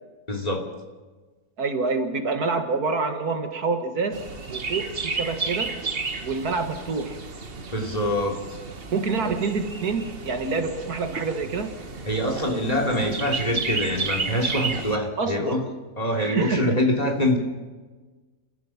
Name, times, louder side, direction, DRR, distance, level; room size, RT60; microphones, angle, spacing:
voice 1, 0.3-0.6 7.7-8.4 9.2-9.3 12.1-15.6 16.0-17.4, left 1 dB, 25° left, 3 dB, 3.1 m, -24 dB
voice 2, 1.6-5.8 6.2-7.2 8.9-11.8 15.2-15.6 16.2-16.8, right 4 dB, 65° right, 7 dB, 2.0 m, -27 dB
Chirp tweet, 4.1-15.0, right 4 dB, 35° right, 1.5 m, -32 dB
28.5 x 15.5 x 5.9 m, 1.3 s
omnidirectional pair, 1.8 m